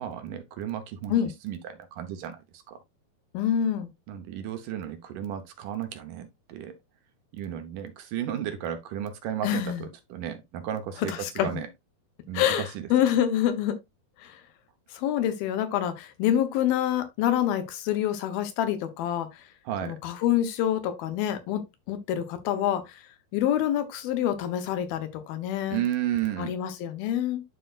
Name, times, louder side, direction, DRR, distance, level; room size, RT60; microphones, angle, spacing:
voice 1, 0.0-1.1 1.4-2.8 4.1-6.7 7.3-11.7 12.3-12.9 19.7-20.0 25.7-26.5, right 10 dB, 70° right, 2.5 m, -33 dB
voice 2, 3.3-3.9 9.4-9.9 11.1-11.6 12.3-13.8 14.2-14.4 14.9-19.4 19.8-21.6 21.9-23.0 23.3-25.8 26.4-27.4, left 10 dB, 90° left, 2.9 m, -27 dB
11.5 x 4.6 x 2.5 m
omnidirectional pair, 4.1 m